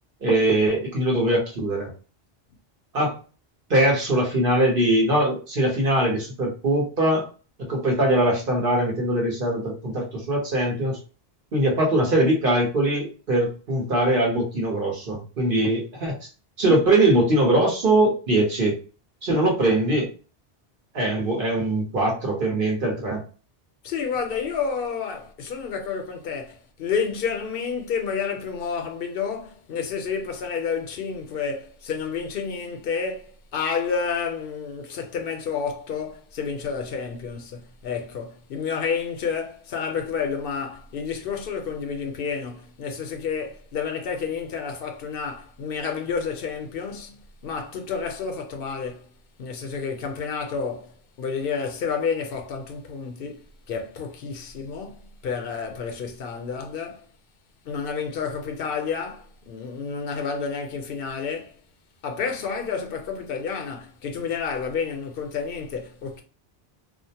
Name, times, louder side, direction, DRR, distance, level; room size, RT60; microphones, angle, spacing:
voice 1, 0.2-1.9 2.9-3.2 3.7-7.2 7.7-11.0 11.5-16.1 16.6-18.8 19.2-20.1 20.9-23.2, right 1 dB, 60° right, 1.0 m, -22 dB
voice 2, 23.8-49.1 49.4-57.1 57.7-61.6 62.0-66.2, left 6 dB, 70° left, 0.8 m, -30 dB
2.5 x 2.1 x 2.7 m
omnidirectional pair, 1.0 m